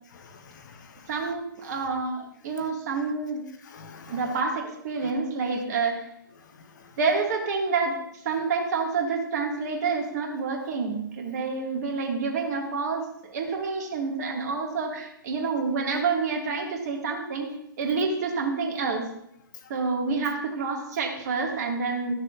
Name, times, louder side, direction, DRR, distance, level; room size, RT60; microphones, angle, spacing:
voice 1, 0.1-1.1 2.6-2.7 3.6-4.4 5.0-5.1 6.4-7.0 19.5-19.7, left 5 dB, 55° left, 7 dB, 1.0 m, -48 dB
voice 2, 1.1-3.4 4.1-6.0 7.0-7.9 8.2-19.1 19.7-22.1, right 4 dB, 50° right, 1 dB, 1.7 m, -28 dB
13.0 x 6.7 x 2.4 m, 0.78 s
figure-of-eight pair, 120°, 12 cm